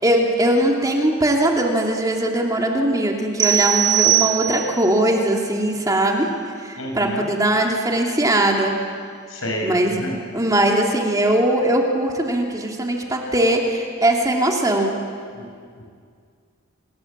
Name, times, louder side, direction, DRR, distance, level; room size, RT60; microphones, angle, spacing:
voice 1, 0.0-6.3 6.6-8.8 9.6-10.0 10.3-15.0, right 1 dB, 15° right, 0 dB, 2.7 m, -20 dB
sound 1, 3.4-4.9, right 12 dB, 40° right, 1.5 m, -19 dB
voice 2, 6.8-7.3 9.3-10.2 15.3-15.4, equal, 75° left, 1 dB, 6.9 m, -29 dB
27.5 x 19.5 x 8.7 m, 2.1 s
head